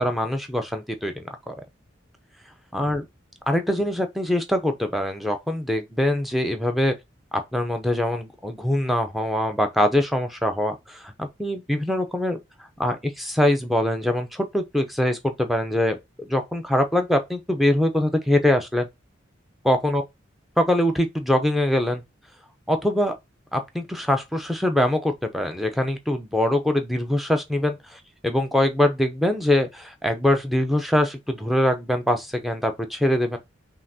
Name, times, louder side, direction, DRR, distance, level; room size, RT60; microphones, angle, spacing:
voice 1, 0.0-1.5 2.7-3.0 3.5-6.9 7.3-12.4 12.8-18.9 19.6-20.0 20.6-22.0 22.7-23.1 23.5-33.4, left 1 dB, ahead, 0.6 m, -23 dB
5.5 x 2.8 x 2.8 m
head